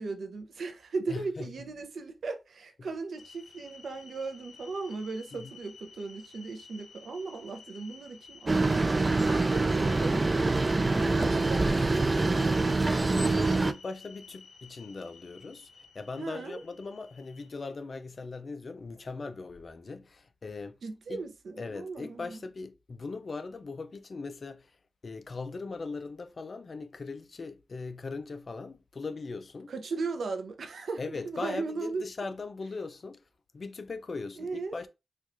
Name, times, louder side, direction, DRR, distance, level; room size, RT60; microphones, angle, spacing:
voice 1, 0.0-12.5 16.2-16.6 20.8-22.4 29.7-32.1 34.4-34.8, right 4 dB, 80° right, 0.6 m, -37 dB
voice 2, 1.1-1.5 5.3-5.5 12.9-20.8 21.1-21.2 21.6-24.7 25.0-29.7 31.0-33.2 33.5-34.9, left 4 dB, 50° left, 0.4 m, -39 dB
sound 1, 3.2-17.5, left 5 dB, 90° left, 0.7 m, -53 dB
sound 2, 8.5-13.7, right 3 dB, 30° right, 0.3 m, -25 dB
4.4 x 2.4 x 2.5 m
wide cardioid pair, 85°, 0 cm